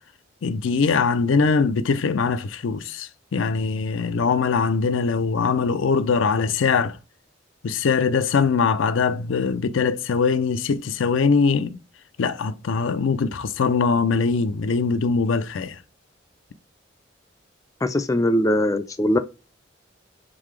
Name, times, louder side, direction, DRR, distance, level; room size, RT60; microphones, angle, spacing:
voice 1, 0.4-7.0 7.6-11.8 12.2-15.8, left 5 dB, 85° left, 0.4 m, -22 dB
voice 2, 17.8-19.2, left 1 dB, 15° left, 0.3 m, -21 dB
3.9 x 3.7 x 3.1 m
head